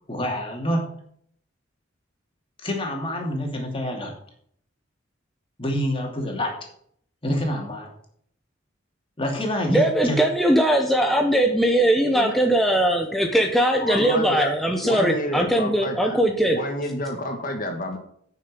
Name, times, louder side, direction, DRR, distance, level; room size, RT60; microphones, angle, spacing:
voice 1, 0.1-0.8 2.6-4.1 5.6-6.5 7.2-7.9 9.2-10.2, equal, 30° left, 1 dB, 2.7 m, -27 dB
voice 2, 9.7-16.6, right 1 dB, ahead, 2 dB, 0.9 m, -20 dB
voice 3, 13.8-14.5 14.8-16.2 16.5-18.0, left 1 dB, 45° left, 4 dB, 1.7 m, -29 dB
9.4 x 6.6 x 6.9 m, 0.65 s
head